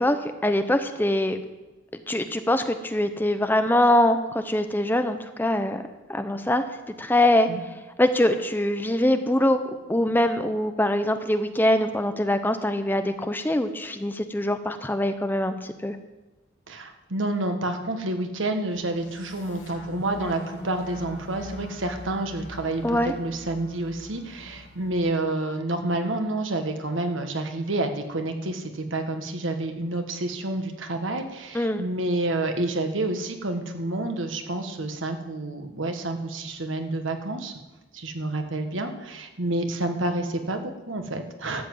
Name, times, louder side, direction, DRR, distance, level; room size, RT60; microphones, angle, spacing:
voice 1, 0.0-1.4 2.1-5.8 6.1-6.6 7.0-7.5 8.0-9.6 9.9-16.0 22.8-23.1 31.5-31.8, left 1 dB, 10° left, 8 dB, 0.6 m, -23 dB
voice 2, 16.7-37.5 37.9-41.7, right 2 dB, 85° right, 6 dB, 1.5 m, -29 dB
sound 1, 18.7-25.0, left 1 dB, 80° left, 2.6 m, -41 dB
12.5 x 7.6 x 7.7 m, 1.1 s
head